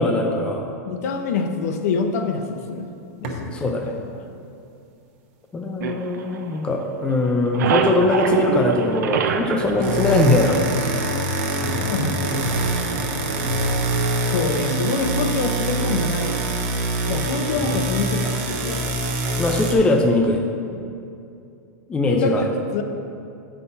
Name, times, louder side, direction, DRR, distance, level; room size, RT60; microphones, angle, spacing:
voice 1, 0.0-0.8 3.5-3.9 5.5-10.9 17.5-17.8 19.4-20.4 21.9-22.5, left 2 dB, 10° left, 2 dB, 0.4 m, -21 dB
voice 2, 0.8-2.9 3.2-4.0 11.8-12.5 14.3-16.5 17.0-18.9 20.7-20.9 22.1-22.8, left 4 dB, 60° left, 6 dB, 0.7 m, -26 dB
sound 1, 3.2-3.5 9.6-19.7, right 2 dB, 45° right, 1.0 m, -24 dB
sound 2, 5.8-7.0 7.2-10.9, right 7 dB, 80° right, 0.6 m, -25 dB
8.2 x 5.8 x 4.1 m, 2.6 s
supercardioid pair, 160°, 9 cm